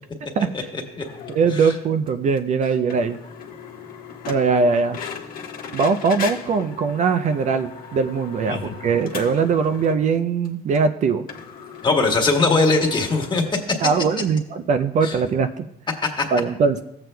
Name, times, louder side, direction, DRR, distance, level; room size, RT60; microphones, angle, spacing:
voice 1, 0.5-1.0 1.5-1.7 8.5-8.7 11.8-13.4 15.0-15.2 16.0-16.2, left 3 dB, 25° left, 2 dB, 1.5 m, -21 dB
sound 1, 1.0-1.6 2.1-2.2 2.4-2.5 2.9-10.1 10.4-10.5 10.7-10.8 11.3-13.3, left 6 dB, 60° left, 1.1 m, -37 dB
voice 2, 1.3-3.2 4.3-5.0 5.7-11.2 13.8-15.6 16.3-16.8, right 5 dB, 45° right, 9 dB, 0.4 m, -21 dB
14.5 x 7.7 x 2.2 m, 0.81 s
cardioid pair, 110°, 17 cm